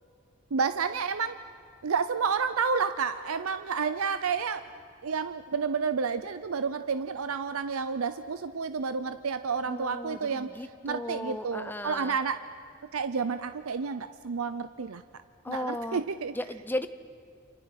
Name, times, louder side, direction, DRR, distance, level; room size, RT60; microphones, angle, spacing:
voice 1, 0.5-1.4 1.8-4.6 5.0-10.5 10.8-12.4 12.9-15.0 15.5-16.3, right 5 dB, 85° right, 11 dB, 0.6 m, -30 dB
voice 2, 9.6-12.2 15.4-16.0 16.3-16.9, left 1 dB, 10° left, 10 dB, 0.7 m, -35 dB
29.5 x 26.0 x 6.0 m, 2.2 s
head